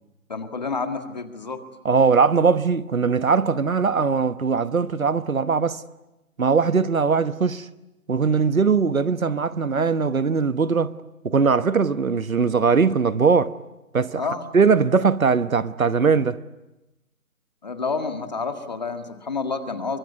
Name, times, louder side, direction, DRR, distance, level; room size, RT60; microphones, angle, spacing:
voice 1, 0.3-1.6 14.2-14.5 17.6-20.0, left 4 dB, 30° left, 1.8 m, -29 dB
voice 2, 1.8-5.8 6.4-7.7 8.1-10.9 11.2-13.5 13.9-14.2 14.5-16.4, right 5 dB, 70° right, 1.2 m, -20 dB
24.0 x 23.5 x 9.5 m
figure-of-eight pair, 170°, 43 cm